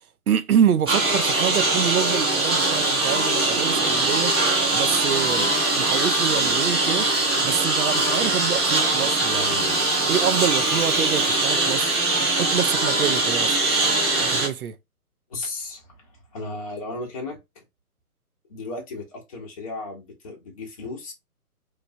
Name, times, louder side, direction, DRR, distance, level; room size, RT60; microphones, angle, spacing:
voice 1, 0.3-4.3 4.7-7.1 7.4-9.7 10.1-12.0 12.3-13.6 14.2-14.8, right 8 dB, 70° right, 0.6 m, -26 dB
Engine, 0.9-14.5, right 2 dB, 15° right, 0.7 m, -22 dB
voice 2, 15.3-17.6 18.5-21.1, left 2 dB, 25° left, 0.7 m, -35 dB
3.2 x 2.3 x 2.6 m
figure-of-eight pair, 140°, 46 cm